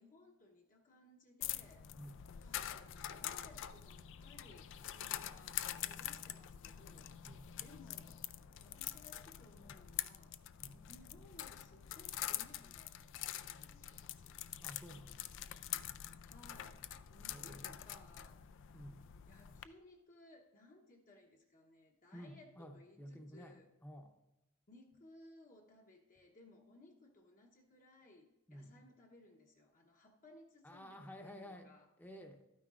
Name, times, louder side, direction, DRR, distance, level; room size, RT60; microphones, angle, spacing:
voice 1, 0.0-1.9 2.4-7.2 7.6-8.2 8.6-10.4 10.9-14.3 16.2-18.5 19.3-23.7 24.7-31.9, left 2 dB, 40° left, 1 dB, 0.9 m, -62 dB
sound 1, 1.4-19.6, left 12 dB, 60° left, 0.4 m, -45 dB
voice 2, 7.2-7.6 10.6-10.9 14.6-15.5 17.3-17.7 18.7-19.0 22.1-23.6 23.8-24.1 28.5-28.8 30.6-31.7 32.0-32.4, equal, 10° left, 4 dB, 0.7 m, -52 dB
12.0 x 9.5 x 2.4 m, 0.95 s
head